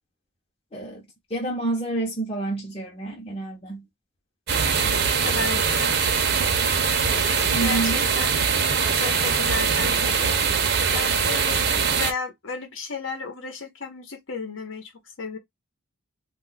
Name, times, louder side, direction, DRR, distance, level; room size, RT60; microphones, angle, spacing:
voice 1, 0.7-3.9 7.1-8.0, right 2 dB, 30° left, 0.7 m, -29 dB
sound 1, 4.5-12.1, right 6 dB, 50° right, 0.6 m, -22 dB
voice 2, 4.8-6.0 7.2-8.4 8.9-10.4 10.9-15.4, left 4 dB, 70° left, 0.9 m, -34 dB
2.3 x 2.2 x 3.9 m
head